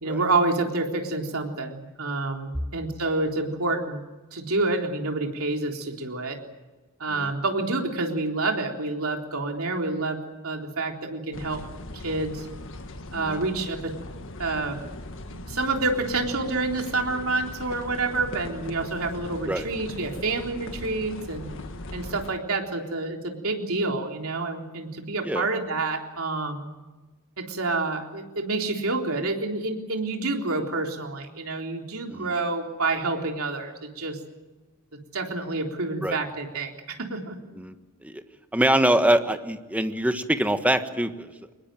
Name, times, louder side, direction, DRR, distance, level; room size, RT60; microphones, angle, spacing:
voice 1, 0.0-4.0 4.3-6.4 7.0-11.6 11.9-12.5 13.1-13.9 14.4-14.8 15.3-21.5 21.9-26.7 27.4-34.2 35.1-37.4, right 3 dB, 70° right, 2 dB, 3.7 m, -28 dB
sound 1, 11.3-22.3, left 1 dB, 60° left, 1.7 m, -39 dB
voice 2, 38.5-41.3, right 1 dB, 5° right, 8 dB, 1.4 m, -24 dB
24.5 x 21.0 x 7.7 m, 1.2 s
head